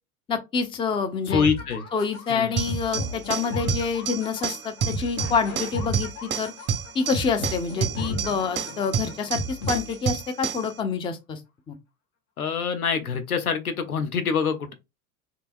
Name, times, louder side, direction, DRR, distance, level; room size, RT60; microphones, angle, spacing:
voice 1, 0.3-1.4 1.9-6.5 6.9-11.4 11.7-11.8, left 5 dB, 10° left, 0.5 m, -27 dB
voice 2, 1.3-1.8 2.3-2.6 12.4-14.7, left 6 dB, 80° left, 0.7 m, -25 dB
sound 1, 1.3-10.3, left 1 dB, 50° left, 1.4 m, -34 dB
sound 2, 2.6-10.7, right 7 dB, 25° right, 0.7 m, -30 dB
3.3 x 2.9 x 2.5 m
figure-of-eight pair, 75°, 43 cm